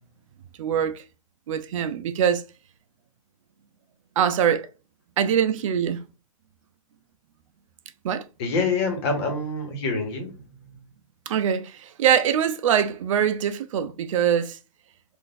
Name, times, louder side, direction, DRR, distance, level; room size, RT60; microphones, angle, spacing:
voice 1, 0.6-1.0 1.5-2.4 4.2-4.7 5.2-6.0 8.0-8.2 11.3-14.6, right 8 dB, 60° right, 0.5 m, -23 dB
voice 2, 8.4-10.4, left 3 dB, 45° left, 1.2 m, -26 dB
3.8 x 2.5 x 2.5 m
hypercardioid pair, 150°, 19 cm